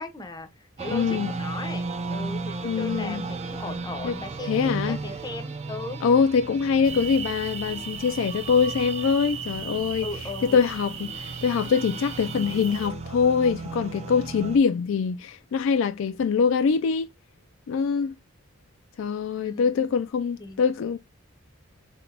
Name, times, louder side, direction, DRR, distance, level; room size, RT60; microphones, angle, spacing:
voice 1, 0.0-6.0 10.0-10.6 19.4-20.0 20.4-20.6, left 2 dB, 20° left, 0.6 m, -38 dB
sound 1, 0.8-14.6, right 3 dB, 30° right, 0.4 m, -35 dB
voice 2, 0.9-1.3 2.6-3.2 4.0-4.1 4.5-5.0 6.0-10.1 10.4-17.1 17.7-18.2 19.0-21.0, left 6 dB, 65° left, 0.3 m, -24 dB
sound 2, 6.8-12.9, right 7 dB, 65° right, 0.8 m, -37 dB
3.6 x 2.9 x 3.3 m
head